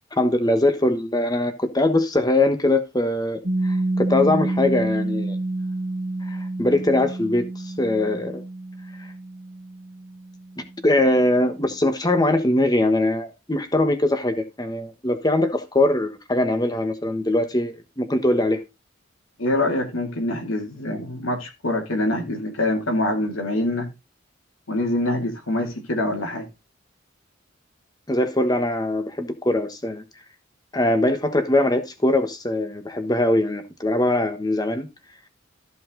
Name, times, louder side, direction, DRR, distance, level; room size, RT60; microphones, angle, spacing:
voice 1, 0.1-5.3 6.3-8.4 9.0-9.1 10.8-18.6 28.1-30.0 30.7-34.9, left 1 dB, 20° left, 1.2 m, -22 dB
Piano, 3.4-10.7, right 2 dB, 45° right, 1.3 m, -28 dB
voice 2, 19.4-23.9 24.7-26.4, left 1 dB, 90° left, 2.7 m, -25 dB
14.0 x 5.4 x 3.8 m
head